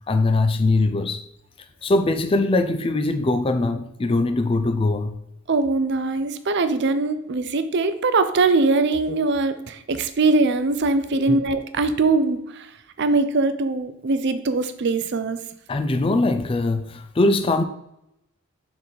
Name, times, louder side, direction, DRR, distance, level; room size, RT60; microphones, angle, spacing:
voice 1, 0.1-1.2 1.8-5.2 11.1-11.4 15.7-17.6, left 2 dB, 25° left, 8 dB, 0.3 m, -21 dB
voice 2, 5.5-15.4, right 3 dB, 50° right, 10 dB, 0.5 m, -22 dB
6.5 x 3.9 x 3.9 m, 0.83 s
head